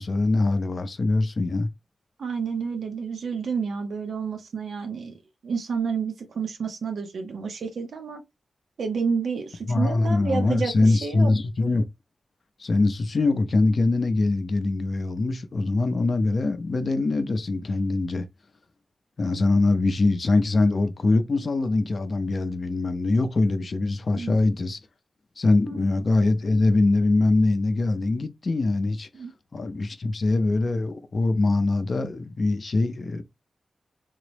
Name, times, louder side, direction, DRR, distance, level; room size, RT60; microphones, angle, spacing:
voice 1, 0.0-1.7 9.7-11.9 12.6-18.3 19.2-24.8 25.4-29.1 29.5-33.2, left 2 dB, 45° left, 0.4 m, -23 dB
voice 2, 2.2-8.2 8.8-11.3 24.2-24.4 25.7-25.8 29.1-29.3, right 5 dB, 90° right, 0.6 m, -30 dB
3.7 x 2.0 x 3.1 m
wide cardioid pair, 130°, 0 cm